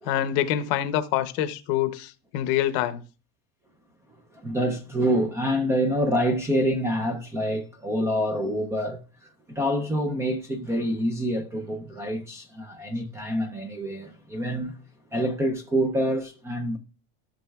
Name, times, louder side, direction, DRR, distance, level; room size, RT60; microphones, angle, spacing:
voice 1, 0.1-3.0, left 11 dB, 50° left, 0.7 m, -26 dB
voice 2, 4.3-14.8 15.1-16.8, equal, 10° right, 0.4 m, -27 dB
14.0 x 6.3 x 2.3 m
cardioid pair, 175°, 32 cm